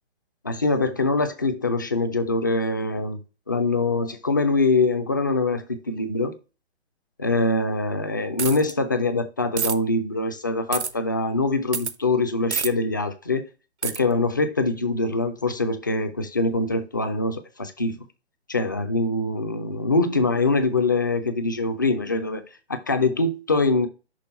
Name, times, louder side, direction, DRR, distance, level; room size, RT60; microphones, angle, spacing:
voice 1, 0.4-3.2 3.5-6.4 7.2-13.5 13.8-18.0 18.5-22.4 22.7-23.9, left 2 dB, 20° left, 0.3 m, -23 dB
sound 1, 8.4-8.7 9.6-9.8 10.7-10.9 11.7-11.9 12.5-12.7 13.8-14.0, right 7 dB, 80° right, 0.8 m, -27 dB
6.1 x 3.3 x 5.6 m
figure-of-eight pair, 135°, 33 cm